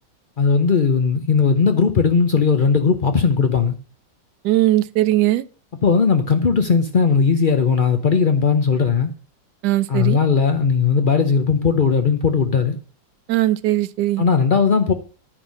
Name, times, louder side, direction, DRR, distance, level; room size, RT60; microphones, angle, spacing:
voice 1, 0.4-3.7 5.8-9.1 9.9-12.8 14.2-14.9, left 5 dB, 85° left, 0.4 m, -17 dB
voice 2, 4.4-5.4 9.6-10.2 13.3-14.2, right 15 dB, 70° right, 1.1 m, -19 dB
10.0 x 5.6 x 6.3 m
omnidirectional pair, 2.0 m